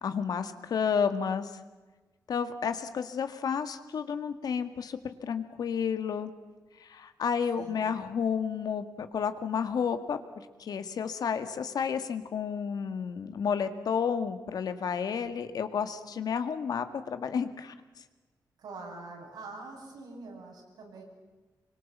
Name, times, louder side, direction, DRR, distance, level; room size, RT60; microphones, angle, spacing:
voice 1, 0.0-1.5 2.3-6.3 6.8-17.7, left 6 dB, 70° left, 9 dB, 1.8 m, -31 dB
voice 2, 7.6-8.0 18.6-21.0, right 3 dB, 85° right, -1 dB, 8.0 m, -44 dB
26.5 x 24.5 x 7.3 m, 1.3 s
wide cardioid pair, 110°, 7 cm